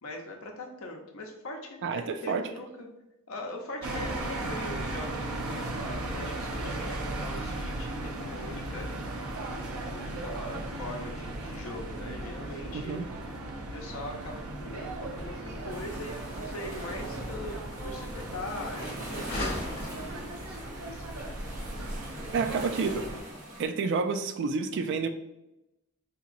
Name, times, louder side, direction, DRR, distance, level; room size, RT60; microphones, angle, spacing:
voice 1, 0.0-2.9 3.3-8.9 9.8-13.0 13.7-21.4, left 1 dB, 70° left, 1 dB, 0.7 m, -41 dB
voice 2, 1.8-2.5 12.7-13.1 22.3-23.0 23.6-25.1, right 4 dB, 55° right, 8 dB, 0.3 m, -29 dB
sound 1, 3.8-23.2, right 2 dB, 90° right, 0.6 m, -37 dB
sound 2, 15.1-21.7, left 1 dB, 50° left, 0.9 m, -42 dB
sound 3, 15.7-23.7, right 1 dB, 40° right, 1.3 m, -42 dB
3.9 x 2.9 x 2.5 m, 0.91 s
head